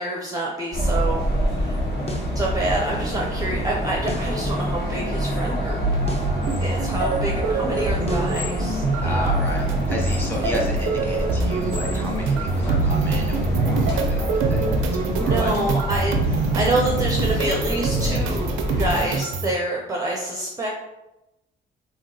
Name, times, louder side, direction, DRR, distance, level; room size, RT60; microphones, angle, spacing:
voice 1, 0.0-1.8 2.3-5.8 6.6-9.3 14.4-20.7, right 1 dB, 20° right, -1 dB, 0.5 m, -27 dB
sound 1, 0.7-19.0, equal, 60° left, 1.1 m, -27 dB
sound 2, 2.1-2.4 4.1-4.4 6.1-6.4 8.1-8.4, left 1 dB, 30° left, 0.6 m, -33 dB
sound 3, 5.8-19.5, right 3 dB, 85° right, 0.4 m, -24 dB
voice 2, 9.0-15.5, left 1 dB, 10° left, -2 dB, 1.0 m, -32 dB
3.2 x 2.8 x 2.6 m, 0.95 s
cardioid pair, 90°, 20 cm